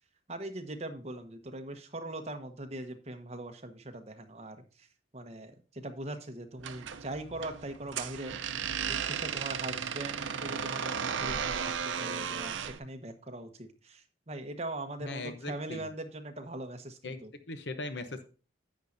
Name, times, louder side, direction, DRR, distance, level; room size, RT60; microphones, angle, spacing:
voice 1, 0.3-4.9 5.1-8.4 8.8-17.3, right 2 dB, 35° right, 6 dB, 1.2 m, -41 dB
sound 1, 6.6-12.8, right 7 dB, 80° right, 0.6 m, -35 dB
voice 2, 15.0-15.9 17.0-17.2 17.5-18.2, left 2 dB, 60° left, 10 dB, 0.9 m, -39 dB
10.5 x 8.6 x 2.7 m, 0.36 s
head